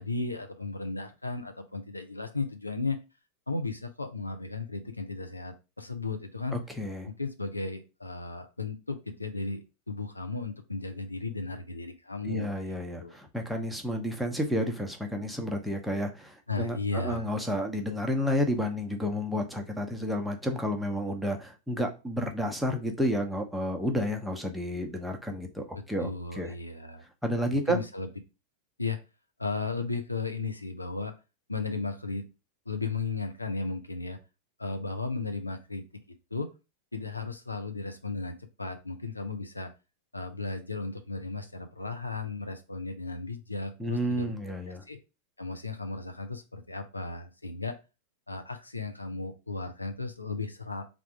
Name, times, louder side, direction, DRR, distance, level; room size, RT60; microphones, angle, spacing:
voice 1, 0.0-3.0 3.5-6.6 7.2-12.7 13.0-13.2 16.5-17.3 26.0-27.0 27.5-28.1 28.8-29.0 29.4-31.1 31.5-32.3 32.7-34.2 34.6-36.0 36.3-36.5 36.9-39.7 40.1-44.3 44.9-45.0 45.4-47.8 48.3-50.9, left 3 dB, 85° left, 6 dB, 0.5 m, -35 dB
voice 2, 6.5-7.1 12.2-26.1 26.4-26.5 27.2-27.8 43.8-44.8, equal, ahead, 2 dB, 0.7 m, -31 dB
3.5 x 2.5 x 4.4 m, 0.29 s
figure-of-eight pair, 90°, 0 cm